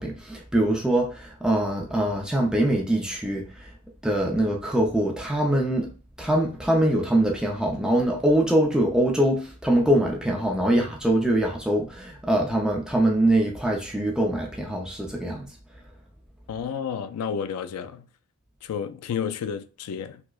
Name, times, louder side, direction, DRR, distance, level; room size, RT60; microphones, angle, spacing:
voice 1, 0.0-3.7 4.0-5.9 6.2-15.5, right 1 dB, 5° right, 0.4 m, -23 dB
voice 2, 16.5-18.1 18.6-20.2, left 7 dB, 85° left, 0.3 m, -31 dB
4.6 x 2.0 x 2.3 m
head